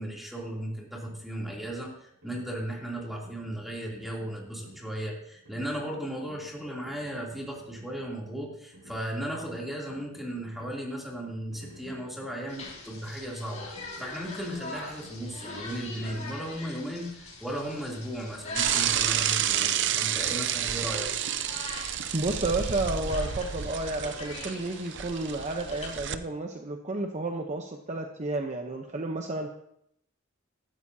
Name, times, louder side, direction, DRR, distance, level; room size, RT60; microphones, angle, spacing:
voice 1, 0.0-21.1, right 1 dB, ahead, -3 dB, 3.0 m, -36 dB
sound 1, 1.0-16.7, right 1 dB, 80° right, 4.7 m, -55 dB
sound 2, 12.5-26.0, left 2 dB, 35° left, 5.5 m, -43 dB
Bicycle / Mechanisms, 18.6-26.2, right 10 dB, 60° right, 0.6 m, -30 dB
voice 2, 22.1-29.5, right 2 dB, 35° right, 3 dB, 0.9 m, -31 dB
15.5 x 13.5 x 2.8 m, 0.73 s
head